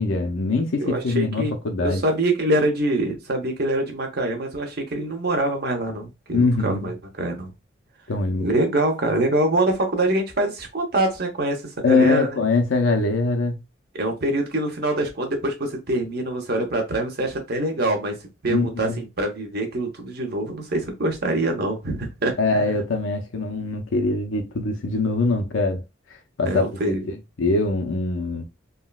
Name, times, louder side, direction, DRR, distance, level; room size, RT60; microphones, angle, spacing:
voice 1, 0.0-2.0 6.3-6.9 8.1-8.5 11.8-13.6 18.5-19.0 22.4-25.8 26.4-26.9 27.4-28.4, left 3 dB, 85° left, 0.6 m, -22 dB
voice 2, 0.8-1.5 1.8-7.5 8.4-12.4 13.9-18.1 18.4-22.6 26.5-27.2, right 1 dB, 55° right, 0.8 m, -24 dB
3.6 x 2.2 x 2.3 m
head